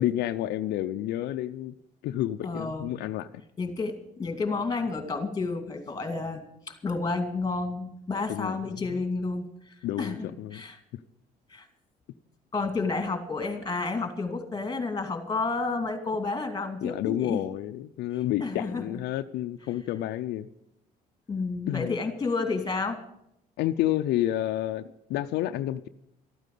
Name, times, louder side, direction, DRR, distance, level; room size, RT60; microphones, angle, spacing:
voice 1, 0.0-1.8 2.0-3.3 8.3-8.8 9.8-10.6 16.8-20.5 21.7-21.9 23.6-25.9, left 13 dB, 80° left, 9 dB, 0.6 m, -30 dB
voice 2, 2.4-2.9 3.6-10.8 11.5-11.7 12.5-17.4 18.4-19.0 21.3-23.0, left 3 dB, 25° left, 7 dB, 2.5 m, -31 dB
13.5 x 9.2 x 8.3 m, 0.77 s
cardioid pair, 110°, 17 cm